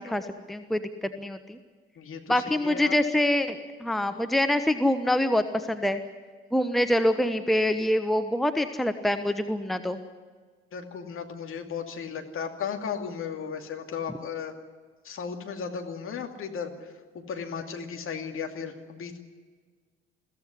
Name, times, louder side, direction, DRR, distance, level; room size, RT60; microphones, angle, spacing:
voice 1, 0.0-1.6 2.3-6.0 6.5-10.0, left 1 dB, ahead, 9 dB, 1.1 m, -25 dB
voice 2, 2.0-2.9 10.7-14.5 15.0-19.2, left 6 dB, 45° left, 3 dB, 2.6 m, -35 dB
22.0 x 15.5 x 9.9 m, 1.5 s
figure-of-eight pair, 50°, 31 cm